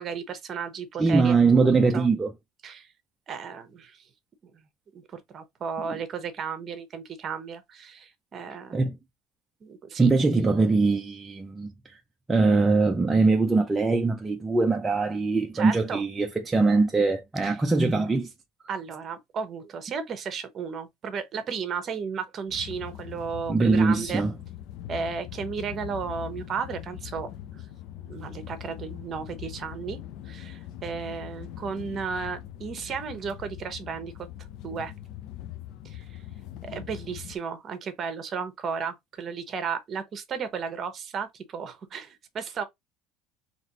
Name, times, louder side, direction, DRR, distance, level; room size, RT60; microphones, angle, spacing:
voice 1, 0.0-2.1 2.6-2.9 3.3-4.0 4.9-8.8 9.6-10.1 15.5-16.0 17.4-17.6 18.7-24.2 24.9-27.6 28.0-30.0 30.2-34.1 34.6-34.9 35.8-36.2 36.6-42.6, right 6 dB, 35° right, 1.0 m, -34 dB
voice 2, 1.0-2.3 8.7-9.0 10.0-11.7 12.3-18.3 23.5-24.3, right 3 dB, 15° right, 0.5 m, -22 dB
sound 1, 22.5-37.4, left 12 dB, 60° left, 0.6 m, -41 dB
4.2 x 3.0 x 2.9 m
cardioid pair, 135°, 0 cm